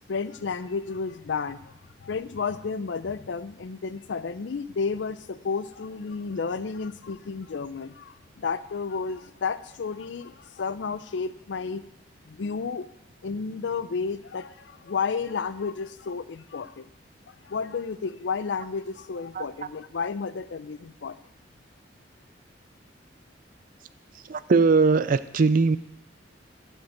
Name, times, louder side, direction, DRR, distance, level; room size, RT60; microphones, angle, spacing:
voice 1, 0.1-1.7 2.0-11.8 12.3-12.9 13.2-16.9 17.4-21.2, left 5 dB, 75° left, 14 dB, 0.5 m, -32 dB
voice 2, 24.3-25.8, right 4 dB, 50° right, 13 dB, 0.4 m, -20 dB
11.5 x 4.6 x 7.6 m, 0.83 s
head